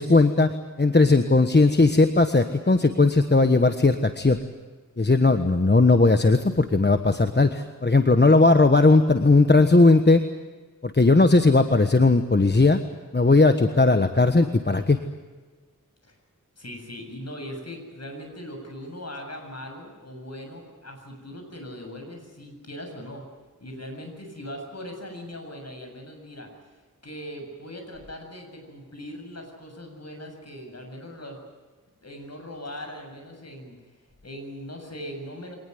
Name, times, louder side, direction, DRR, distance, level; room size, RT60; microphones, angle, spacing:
voice 1, 0.0-4.4 5.0-10.2 10.8-12.8 13.1-15.0, left 3 dB, 30° left, 8 dB, 1.3 m, -18 dB
voice 2, 16.6-23.2 23.6-26.8 27.0-31.4 32.0-33.8 34.2-35.6, equal, 50° left, 3 dB, 7.5 m, -40 dB
24.5 x 19.5 x 9.5 m, 1.4 s
wide cardioid pair, 80°, 32 cm